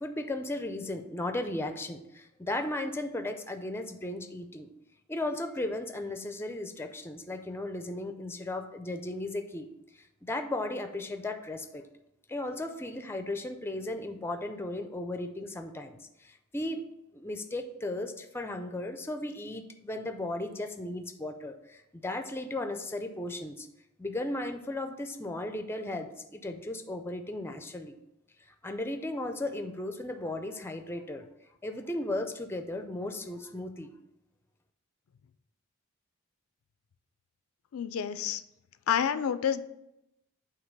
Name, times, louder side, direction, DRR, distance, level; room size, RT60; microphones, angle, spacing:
voice 1, 0.0-4.7 5.1-9.7 9.9-11.8 12.3-16.8 17.1-23.7 24.0-28.0 28.6-31.3 31.6-33.9, left 1 dB, 10° left, 8 dB, 0.4 m, -36 dB
voice 2, 37.7-38.4 38.9-39.6, left 8 dB, 90° left, 13 dB, 0.4 m, -28 dB
8.0 x 2.9 x 5.3 m, 0.86 s
head